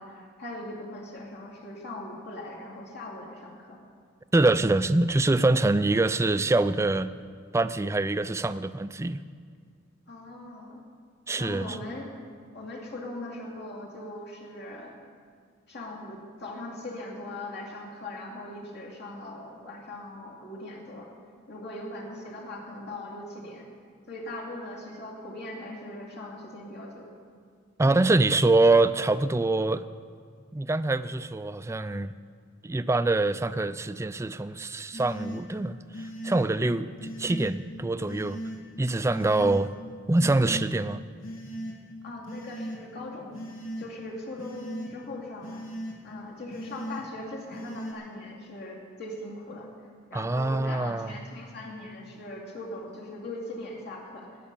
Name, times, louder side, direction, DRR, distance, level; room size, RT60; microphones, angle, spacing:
voice 1, 0.0-3.8 10.1-10.8 11.4-12.1 12.5-14.9 15.7-21.1 21.5-23.7 24.1-27.1 42.0-43.4 43.8-45.6 46.0-49.7 50.1-54.3, left 1 dB, 55° left, -2 dB, 2.6 m, -40 dB
voice 2, 4.3-7.1 7.5-9.2 11.3-11.8 27.8-29.8 30.5-32.1 32.6-38.4 38.8-39.7 40.1-41.0 50.1-51.1, right 2 dB, 15° right, 13 dB, 0.3 m, -24 dB
sound 1, 34.9-35.4 35.9-36.4 37.0-37.5 38.1-38.6 39.1-39.6 40.2-40.7 41.2-41.7 42.2-42.8 43.3-43.9 44.4-44.9 45.4-46.0 46.5-47.0 47.5-47.9, equal, 75° left, 2.7 m, -37 dB
17.5 x 8.4 x 7.0 m, 2.1 s
head